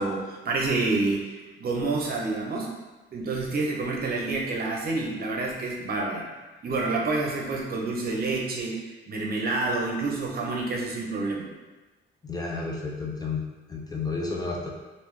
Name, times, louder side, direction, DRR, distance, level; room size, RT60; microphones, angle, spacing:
voice 1, 0.0-2.8 3.1-6.3 6.6-11.5, right 3 dB, 50° right, -1 dB, 0.8 m, -28 dB
voice 2, 12.2-14.7, left 4 dB, 20° left, -2 dB, 0.6 m, -32 dB
3.5 x 2.7 x 3.1 m, 1.2 s
cardioid pair, 90°, 20 cm